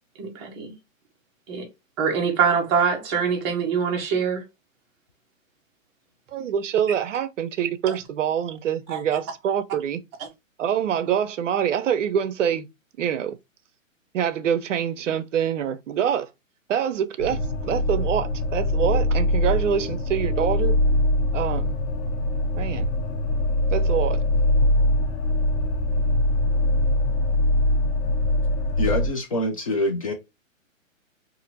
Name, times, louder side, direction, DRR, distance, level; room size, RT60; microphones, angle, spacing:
voice 1, 0.2-0.7 1.5-1.7 2.0-4.4 8.9-9.0 10.2-10.3, right 6 dB, 20° right, 0.6 m, -24 dB
voice 2, 6.3-10.0 10.6-12.7 13.0-13.4 14.1-16.3 16.7-20.7 21.3-21.8 22.5-22.9 23.7-24.2, right 9 dB, 65° right, 0.5 m, -25 dB
sound 1, 17.2-29.1, left 1 dB, 75° left, 0.9 m, -22 dB
voice 3, 28.8-30.1, left 1 dB, 30° left, 0.4 m, -25 dB
2.8 x 2.5 x 2.6 m
hypercardioid pair, 140°, 40 cm